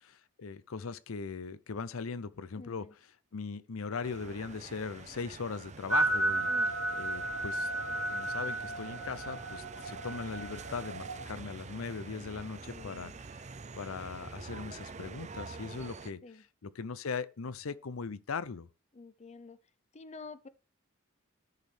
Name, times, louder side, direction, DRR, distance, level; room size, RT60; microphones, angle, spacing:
voice 1, 0.1-7.7 8.1-18.7, left 5 dB, 85° left, 0.6 m, -39 dB
voice 2, 2.5-2.9 6.5-6.7 12.7-13.2 16.2-16.4 18.9-19.6 19.9-20.5, left 3 dB, 35° left, 0.7 m, -48 dB
sound 1, 4.0-16.1, right 4 dB, 35° right, 0.6 m, -46 dB
sound 2, 5.9-11.3, right 2 dB, 75° right, 1.2 m, -33 dB
13.5 x 6.4 x 3.4 m
head